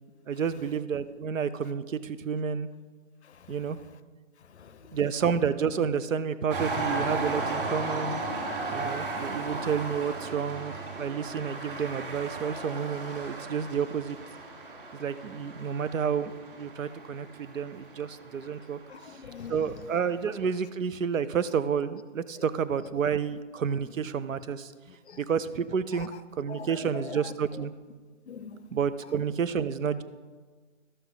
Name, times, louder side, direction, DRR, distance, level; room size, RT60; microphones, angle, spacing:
voice 1, 0.3-2.7 3.5-3.8 4.9-8.2 8.7-14.2 14.9-18.8 19.5-24.7 25.2-27.7 28.7-30.0, right 7 dB, 80° right, 0.7 m, -30 dB
voice 2, 4.6-4.9 18.9-19.7 25.1-25.2 26.5-27.2 28.3-28.7, left 6 dB, 60° left, 0.6 m, -42 dB
sound 1, 6.5-19.3 20.0-20.1, right 3 dB, 45° right, 1.5 m, -35 dB
12.5 x 6.8 x 3.9 m
hypercardioid pair, 160°, 39 cm